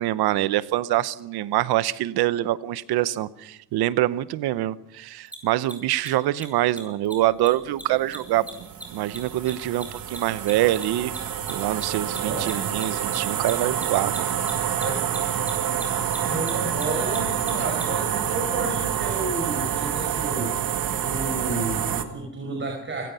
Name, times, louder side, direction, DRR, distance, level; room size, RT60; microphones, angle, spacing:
voice 1, 0.0-8.4 8.9-11.1 11.5-14.3, right 14 dB, 85° right, 0.9 m, -25 dB
Mechanisms, 5.3-5.4 5.6-5.7 6.0-6.1 6.3-6.4 6.7-6.8 7.0-7.1 7.4-7.5 7.8-10.5 10.8-17.8, right 1 dB, 5° right, 6.8 m, -38 dB
sound 1, 7.6-22.0, right 9 dB, 65° right, 1.9 m, -28 dB
voice 2, 12.2-12.7 14.8-15.0 16.3-20.5 21.0-23.0, right 2 dB, 30° right, 5.2 m, -31 dB
29.0 x 17.0 x 5.6 m
cardioid pair, 115°, 37 cm